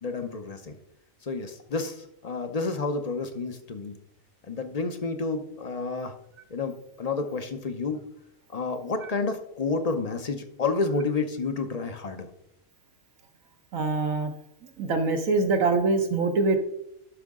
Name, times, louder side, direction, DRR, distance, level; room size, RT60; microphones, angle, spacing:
voice 1, 0.0-0.8 1.2-3.9 4.5-6.1 6.5-8.0 8.5-12.3, left 4 dB, 40° left, 7 dB, 0.6 m, -30 dB
voice 2, 13.7-14.3 14.8-16.6, right 3 dB, 75° right, 4 dB, 1.3 m, -24 dB
11.5 x 6.3 x 3.7 m, 0.78 s
omnidirectional pair, 1.4 m